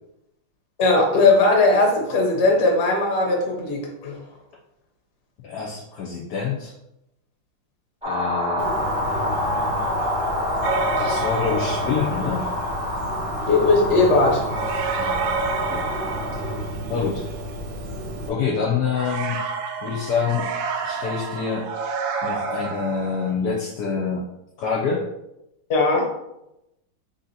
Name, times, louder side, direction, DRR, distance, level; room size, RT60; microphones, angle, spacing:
voice 1, 0.8-4.2 13.5-14.5 25.7-26.1, left 3 dB, 45° left, 0 dB, 0.9 m, -18 dB
voice 2, 5.4-6.7 8.0-8.8 11.0-12.5 15.0-15.9 16.9-17.2 18.3-19.4 19.8-20.5 20.8-21.7 22.2-24.3 24.6-25.1, left 6 dB, 70° left, -2 dB, 1.1 m, -26 dB
sound 1, 8.0-16.7, left 1 dB, 10° right, 0.4 m, -27 dB
Bird, 8.6-18.3, equal, 65° right, 1.0 m, -32 dB
sound 2, 10.6-12.4 14.5-17.0 18.9-23.3, right 5 dB, 80° right, 1.3 m, -29 dB
3.7 x 2.7 x 4.0 m, 0.86 s
omnidirectional pair, 2.1 m